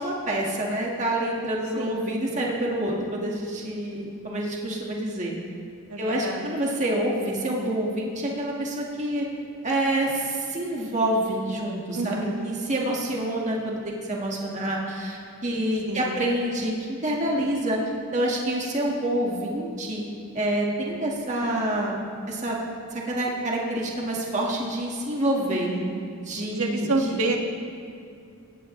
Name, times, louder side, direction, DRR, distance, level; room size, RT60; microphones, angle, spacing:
voice 1, 0.0-5.3 6.0-9.2 9.6-13.8 14.1-17.8 18.1-20.0 20.3-22.0 22.3-22.6 22.9-25.7 26.2-27.2, right 1 dB, 30° right, -2 dB, 1.7 m, -27 dB
voice 2, 1.7-2.1 5.9-6.5 11.9-12.5 15.9-16.3 25.5-26.0 26.5-27.4, right 2 dB, 70° right, 2 dB, 1.7 m, -29 dB
20.0 x 16.5 x 3.2 m, 2.4 s
head